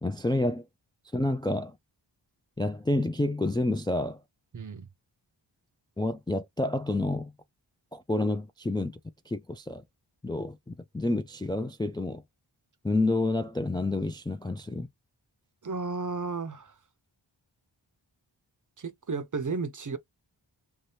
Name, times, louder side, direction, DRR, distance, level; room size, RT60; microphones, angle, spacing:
voice 1, 0.0-0.7 1.1-1.8 2.6-4.2 6.0-7.3 7.9-9.0 9.3-9.8 10.2-12.2 12.8-14.9, left 2 dB, 10° left, 0.3 m, -29 dB
voice 2, 4.5-4.9 15.6-16.8 18.8-20.0, right 4 dB, 40° right, 0.6 m, -33 dB
2.8 x 2.3 x 3.2 m
wide cardioid pair, 50°, 46 cm